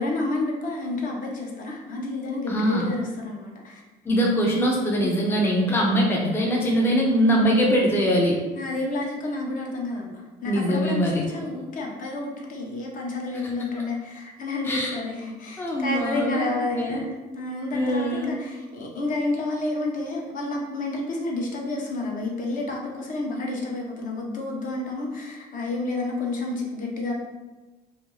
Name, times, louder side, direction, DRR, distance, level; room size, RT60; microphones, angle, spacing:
voice 1, 0.0-3.8 8.6-27.1, left 2 dB, 50° left, -1 dB, 0.6 m, -30 dB
voice 2, 2.5-2.9 4.1-8.4 10.5-11.3 14.6-15.0 15.6-17.0 17.7-18.4, equal, 15° left, -1 dB, 0.4 m, -22 dB
2.4 x 2.3 x 3.0 m, 1.2 s
cardioid pair, 110°, 17 cm